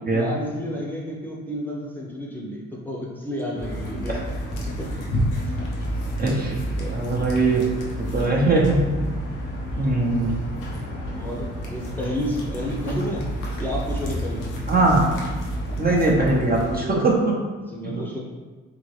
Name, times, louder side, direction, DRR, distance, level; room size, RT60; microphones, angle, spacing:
voice 1, 0.0-4.2 4.8-4.9 5.4-5.5 6.7-7.0 11.2-13.2 13.6-14.5 17.7-18.2, equal, 5° left, -4 dB, 0.8 m, -31 dB
sound 1, 3.6-16.8, equal, 90° left, 1.0 m, -30 dB
voice 2, 6.2-6.6 6.9-7.6 8.0-8.8 9.8-10.3 12.9-13.0 14.7-15.1 15.8-17.3 17.8-18.0, right 2 dB, 30° right, -2 dB, 0.9 m, -21 dB
3.8 x 3.7 x 3.3 m, 1.3 s
cardioid pair, 90°, 30 cm